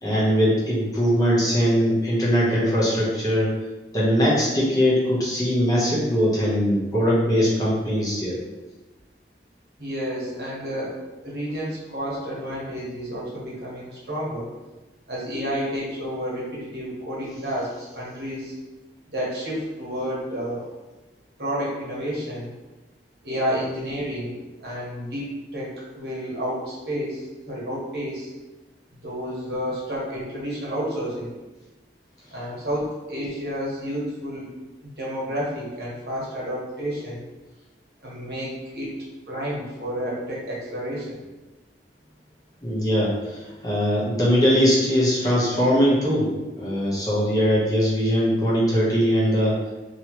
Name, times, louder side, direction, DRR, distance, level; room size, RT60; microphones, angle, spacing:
voice 1, 0.0-3.5 3.9-8.4 42.6-43.4 43.6-46.3 46.6-49.5, equal, 20° left, -7 dB, 0.9 m, -21 dB
voice 2, 9.8-14.5 15.1-18.5 19.1-20.7 21.4-22.5 23.2-24.3 24.6-28.3 28.9-31.3 32.3-34.5 34.8-37.2 38.0-38.9 39.3-41.2, equal, 65° right, -6 dB, 1.2 m, -30 dB
3.0 x 3.0 x 3.0 m, 1.1 s
head